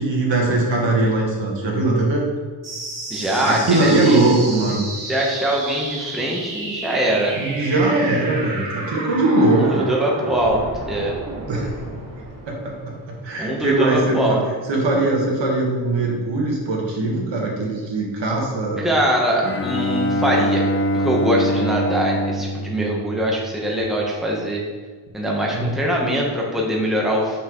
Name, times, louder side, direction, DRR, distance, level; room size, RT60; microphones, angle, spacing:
voice 1, 0.0-2.2 3.4-4.9 7.3-9.8 11.5-11.8 12.5-12.7 13.2-14.4 14.7-18.9 25.5-25.7, right 2 dB, 80° right, -2 dB, 1.4 m, -20 dB
sound 1, 2.6-13.6, right 2 dB, 45° right, 1.2 m, -32 dB
voice 2, 3.1-7.4 9.5-11.2 13.4-14.4 18.8-24.6 25.1-27.4, right 1 dB, ahead, -2 dB, 0.9 m, -22 dB
Bowed string instrument, 19.4-23.8, equal, 30° left, 0.4 m, -24 dB
5.8 x 5.6 x 3.0 m, 1.5 s
wide cardioid pair, 130°, 44 cm